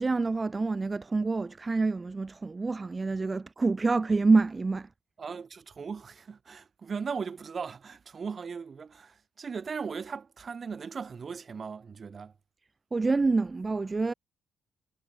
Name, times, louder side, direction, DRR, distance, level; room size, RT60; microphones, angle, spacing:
voice 1, 0.0-4.9 12.9-14.1, right 3 dB, 25° right, 0.5 m, -27 dB
voice 2, 5.2-12.3, right 5 dB, 40° right, 3.1 m, -38 dB
cardioid pair, 90°, 0 cm